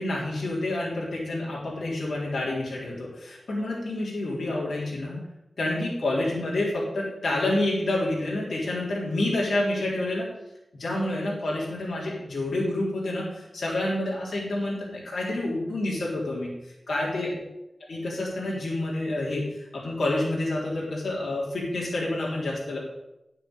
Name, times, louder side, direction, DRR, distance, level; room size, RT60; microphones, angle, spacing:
voice 1, 0.0-5.2 5.6-10.3 10.7-16.5 16.9-17.4 17.9-22.8, left 1 dB, 80° left, -5 dB, 3.7 m, -28 dB
11.0 x 6.8 x 8.9 m, 0.92 s
cardioid pair, 55°, 0 cm